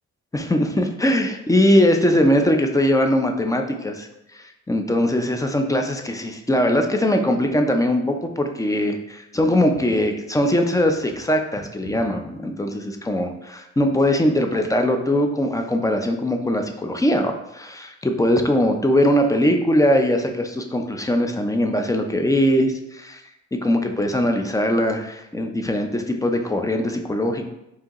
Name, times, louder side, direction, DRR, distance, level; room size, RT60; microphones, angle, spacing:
voice 1, 0.3-4.1 4.4-23.2 23.5-27.5, left 1 dB, 10° left, 4 dB, 0.4 m, -21 dB
4.7 x 2.7 x 2.9 m, 0.86 s
cardioid pair, 90°, 30 cm